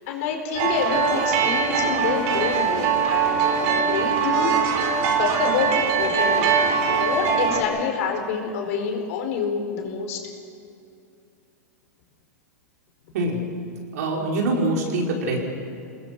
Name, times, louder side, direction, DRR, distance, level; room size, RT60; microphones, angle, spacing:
voice 1, 0.0-4.6 5.2-10.2, left 6 dB, 60° left, 4 dB, 4.4 m, -27 dB
sound 1, 0.5-7.6, right 6 dB, 55° right, 3.9 m, -22 dB
voice 2, 13.9-15.4, right 2 dB, 70° right, 0 dB, 5.0 m, -24 dB
25.0 x 20.5 x 6.2 m, 2.6 s
hypercardioid pair, 115°, 9 cm